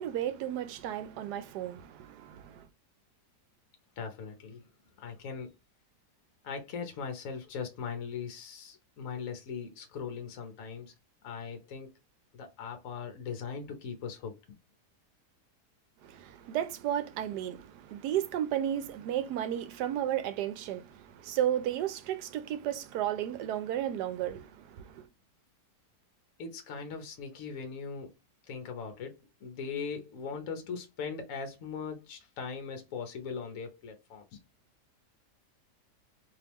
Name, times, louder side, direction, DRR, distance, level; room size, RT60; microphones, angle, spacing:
voice 1, 0.0-2.7 16.0-25.0, right 11 dB, 80° right, 1.2 m, -33 dB
voice 2, 4.0-4.7 5.0-5.5 6.4-10.9 11.2-11.9 12.3-14.4 26.4-28.1 28.4-34.2, left 6 dB, 60° left, 1.1 m, -40 dB
3.4 x 3.0 x 2.9 m
omnidirectional pair, 1.7 m